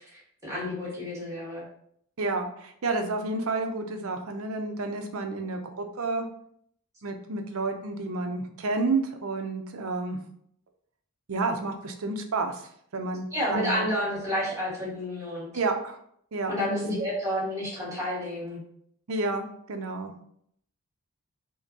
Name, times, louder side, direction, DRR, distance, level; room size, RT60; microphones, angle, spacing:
voice 1, 0.0-1.6 13.3-15.5 16.5-18.6, left 1 dB, 15° right, -7 dB, 1.5 m, -30 dB
voice 2, 2.2-6.3 7.0-10.2 11.3-13.9 15.5-16.0 16.3-16.9 19.1-20.1, right 3 dB, 70° right, 5 dB, 0.6 m, -30 dB
5.5 x 2.2 x 2.7 m, 0.67 s
head